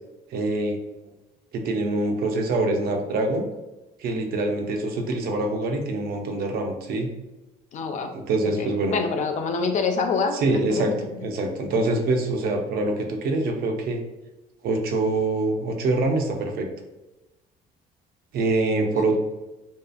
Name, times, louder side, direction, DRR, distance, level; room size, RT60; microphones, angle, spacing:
voice 1, 0.3-0.8 1.5-3.5 4.0-7.1 8.1-8.9 10.4-10.9 11.2-14.0 14.6-16.7 18.3-19.2, right 2 dB, 65° right, 3 dB, 0.5 m, -24 dB
voice 2, 7.7-8.1 8.6-11.2, left 4 dB, 45° left, 5 dB, 0.4 m, -26 dB
2.7 x 2.3 x 2.3 m, 1.0 s
cardioid pair, 110°, 17 cm